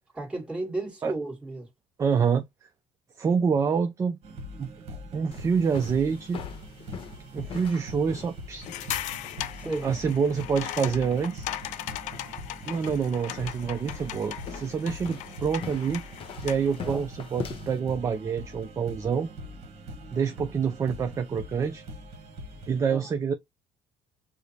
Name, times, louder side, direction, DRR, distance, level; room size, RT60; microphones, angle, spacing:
voice 1, 0.1-1.7 9.6-9.9 16.6-17.0 22.9-23.1, right 2 dB, 10° right, 1.6 m, -34 dB
voice 2, 2.0-2.4 3.2-4.2 4.6-6.4 7.3-9.0 9.8-11.5 12.7-16.0 16.4-19.3 20.1-21.8 22.7-23.3, right 6 dB, 25° right, 0.4 m, -27 dB
sound 1, 4.2-22.8, equal, 50° right, 1.1 m, -43 dB
sound 2, 5.3-17.8, left 6 dB, 45° left, 0.8 m, -44 dB
sound 3, 8.6-16.8, left 13 dB, 70° left, 0.4 m, -38 dB
4.9 x 2.0 x 2.7 m
cardioid pair, 130°, 13 cm